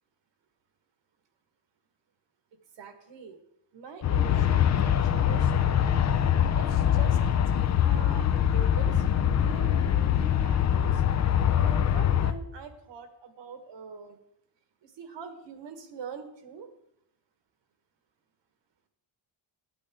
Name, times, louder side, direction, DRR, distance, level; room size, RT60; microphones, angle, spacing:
voice 1, 2.8-3.4 3.7-5.9 6.5-7.2 7.8-9.1 9.4-14.2 14.8-16.7, right 6 dB, 65° right, 8 dB, 1.5 m, -44 dB
Aircraft, 4.0-12.3, left 9 dB, 35° left, 0.5 m, -23 dB
13.0 x 8.7 x 3.6 m, 0.81 s
cardioid pair, 135°, 46 cm